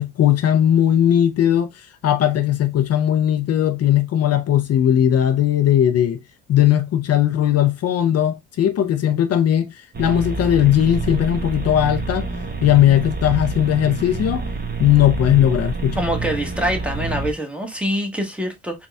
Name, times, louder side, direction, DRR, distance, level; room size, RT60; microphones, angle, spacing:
voice 1, 0.0-6.2 6.5-12.3 12.6-14.4 14.8-16.0, left 11 dB, 55° left, 0.5 m, -18 dB
sound 1, 9.9-17.3, right 3 dB, 30° right, 0.9 m, -27 dB
voice 2, 16.0-18.9, equal, 5° right, 1.0 m, -25 dB
4.1 x 2.2 x 3.3 m
cardioid pair, 90°, 30 cm